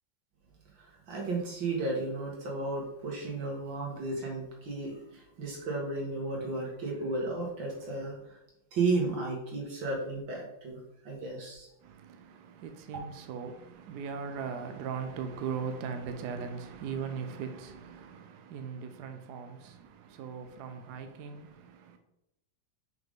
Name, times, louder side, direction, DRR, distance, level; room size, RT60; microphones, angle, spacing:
voice 1, 1.1-8.4 8.7-10.8 11.0-11.7, right 3 dB, 85° right, 2.5 m, -33 dB
voice 2, 11.8-22.0, right 6 dB, 70° right, 1.1 m, -39 dB
5.8 x 5.2 x 3.7 m
omnidirectional pair, 2.0 m